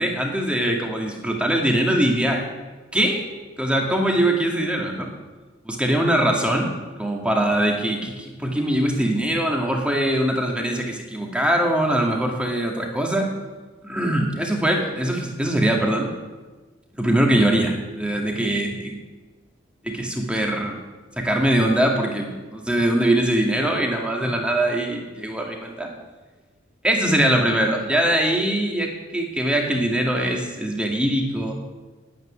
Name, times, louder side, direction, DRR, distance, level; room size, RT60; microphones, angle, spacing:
voice 1, 0.0-2.4 2.9-3.2 3.6-5.1 5.6-6.7 7.0-13.3 13.8-16.1 17.0-19.0 19.8-20.8 21.2-25.9 26.8-31.5, right 1 dB, 5° right, 0 dB, 2.1 m, -22 dB
9.6 x 9.0 x 9.8 m, 1.3 s
head